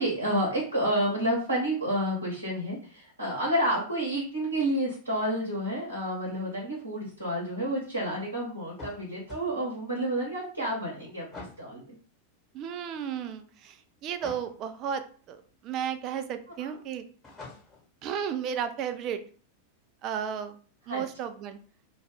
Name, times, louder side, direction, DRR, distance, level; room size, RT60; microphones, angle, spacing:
voice 1, 0.0-11.9 16.6-16.8 20.9-21.0, right 1 dB, 85° right, -6 dB, 0.9 m, -30 dB
sound 1, 8.8-9.5 11.3-11.6 14.2-14.5 17.2-17.9, left 3 dB, 20° left, 1.2 m, -44 dB
voice 2, 12.5-17.0 18.0-19.2 20.0-20.5 20.9-21.6, right 8 dB, 35° right, 10 dB, 0.4 m, -34 dB
2.4 x 2.3 x 3.5 m, 0.42 s
figure-of-eight pair, 90°, 0 cm